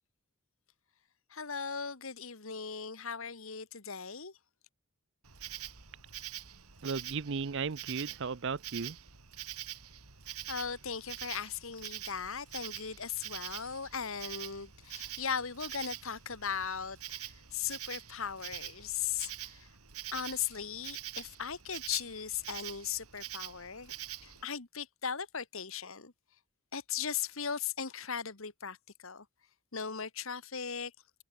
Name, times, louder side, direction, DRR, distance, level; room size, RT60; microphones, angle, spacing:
voice 1, 1.3-4.3 10.3-19.7 20.1-23.9 24.2-26.1 26.7-28.8 29.0-29.2 29.7-30.9, left 7 dB, 65° left, 1.6 m, -38 dB
Insect, 5.2-24.4, right 12 dB, 85° right, 3.4 m, -45 dB
voice 2, 6.8-9.0, right 5 dB, 55° right, 0.6 m, -35 dB
head